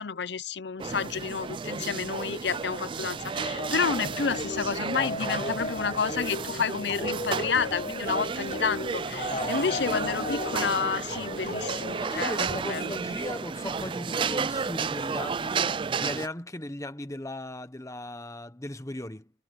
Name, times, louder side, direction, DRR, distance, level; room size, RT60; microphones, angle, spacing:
voice 1, 0.0-13.0, left 5 dB, 65° left, 0.7 m, -30 dB
sound 1, 0.8-16.3, right 5 dB, 25° right, 0.3 m, -32 dB
sound 2, 3.4-12.6, left 2 dB, 40° left, 1.2 m, -36 dB
voice 2, 9.3-9.6 12.0-19.3, left 1 dB, 15° left, 1.1 m, -37 dB
head